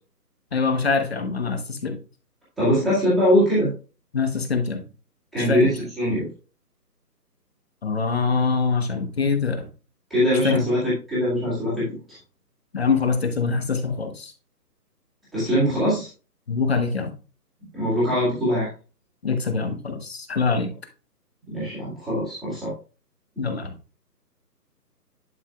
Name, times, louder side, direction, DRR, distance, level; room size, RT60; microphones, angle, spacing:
voice 1, 0.5-2.0 4.1-4.9 5.4-5.6 7.8-9.7 10.4-10.7 12.7-14.3 16.5-17.1 19.2-20.7 23.4-23.7, left 5 dB, 40° left, 7 dB, 1.1 m, -24 dB
voice 2, 2.6-3.7 5.3-6.3 10.1-12.2 15.3-16.1 17.7-18.7 21.5-22.8, equal, ahead, -13 dB, 1.8 m, -22 dB
11.0 x 5.6 x 2.3 m, 0.35 s
hypercardioid pair, 170°, 49 cm